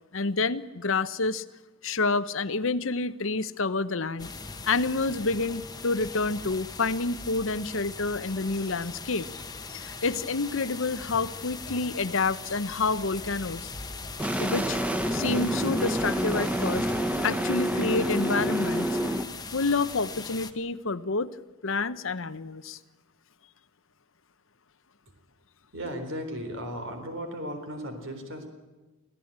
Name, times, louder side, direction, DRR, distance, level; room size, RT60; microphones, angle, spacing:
voice 1, 0.1-1.4 1.8-4.3 4.6-9.3 9.7-13.7 14.4-14.8 15.1-16.9 17.2-18.9 19.5-21.4 21.6-22.8, left 3 dB, 60° left, 14 dB, 0.9 m, -28 dB
sound 1, 4.2-20.5, left 4 dB, 20° left, 1.3 m, -40 dB
sound 2, 14.2-19.2, equal, 5° right, 1.1 m, -28 dB
voice 2, 25.7-28.5, equal, 60° right, 6 dB, 4.0 m, -36 dB
25.0 x 16.0 x 8.8 m, 1.2 s
head